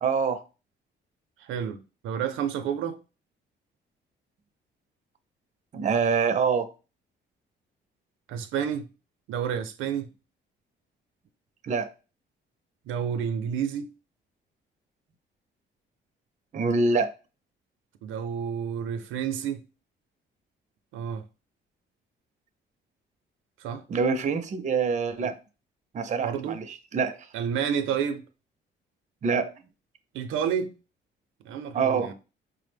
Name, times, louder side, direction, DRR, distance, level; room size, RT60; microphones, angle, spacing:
voice 1, 0.0-0.4 5.7-6.7 11.6-11.9 16.5-17.1 23.9-25.4 25.9-27.3 29.2-29.5 31.7-32.1, right 5 dB, 35° right, 0.5 m, -25 dB
voice 2, 1.4-3.0 8.3-8.9 9.3-10.1 12.9-13.9 18.0-19.6 20.9-21.2 23.6-23.8 25.2-25.3 26.2-26.6 27.3-28.2 30.1-30.7 31.4-32.1, right 8 dB, 90° right, 0.5 m, -30 dB
4.7 x 2.0 x 3.3 m
cardioid pair, 90°, 20 cm